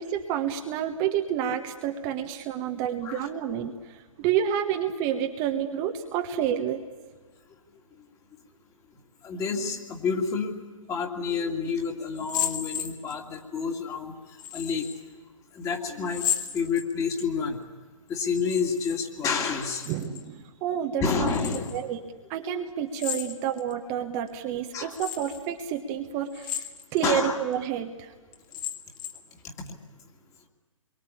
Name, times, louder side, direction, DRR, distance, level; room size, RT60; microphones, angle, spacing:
voice 1, 0.0-6.8 19.9-21.3 21.7-22.0 22.3-28.1, right 9 dB, 25° right, 5 dB, 1.4 m, -29 dB
voice 2, 9.2-10.6 10.9-14.1 14.5-14.9 15.5-16.3 16.5-17.6 18.1-19.9 21.0-21.9 24.7-25.0 27.0-27.4 29.4-29.7, left 5 dB, 20° left, 3 dB, 2.5 m, -29 dB
sound 1, 12.1-13.4 14.4-15.0 16.1-17.2 18.3-19.0 19.3-20.2 21.2-21.8 22.9-23.7 24.3-24.4 24.9-25.4 26.3-27.1 27.5-27.6 28.3-29.3, left 10 dB, 35° left, 1.9 m, -34 dB
28.0 x 23.0 x 8.6 m, 1.3 s
figure-of-eight pair, 125°, 17 cm